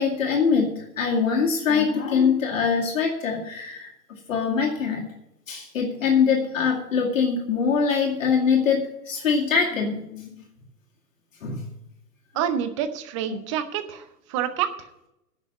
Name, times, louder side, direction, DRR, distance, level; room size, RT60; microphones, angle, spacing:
voice 1, 0.0-3.9 4.3-5.1 5.5-10.3 11.4-11.7 13.3-13.4, left 6 dB, 50° left, -1 dB, 2.1 m, -23 dB
voice 2, 12.3-14.0 14.3-14.7, right 9 dB, 20° right, 11 dB, 0.7 m, -27 dB
10.5 x 6.6 x 8.5 m, 0.82 s
figure-of-eight pair, 115°, 49 cm